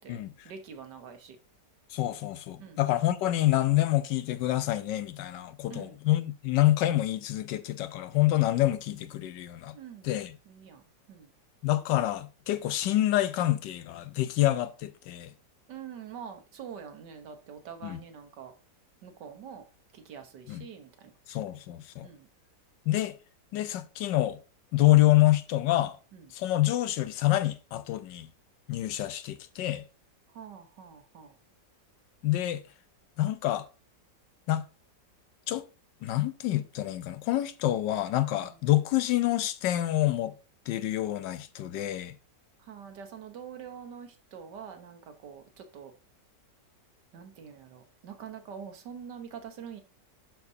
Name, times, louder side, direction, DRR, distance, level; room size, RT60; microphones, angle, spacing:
voice 1, 0.4-1.4 2.6-2.8 5.7-6.0 9.7-10.1 10.5-10.8 11.1-11.3 15.7-18.5 19.0-19.6 19.9-21.1 22.0-22.3 26.1-26.3 30.3-31.3 38.4-38.6 42.6-45.9 47.1-49.8, right 7 dB, 70° right, 1.6 m, -45 dB
voice 2, 1.9-9.8 10.0-10.4 11.6-15.3 17.8-18.0 20.5-20.6 21.3-22.1 22.9-23.2 23.5-24.4 24.7-26.0 26.3-28.3 28.7-29.8 32.2-32.6 33.2-33.6 34.5-34.6 35.5-35.7 36.0-40.3 40.7-42.1, left 15 dB, 80° left, 1.3 m, -27 dB
11.5 x 4.6 x 2.7 m
omnidirectional pair, 1.9 m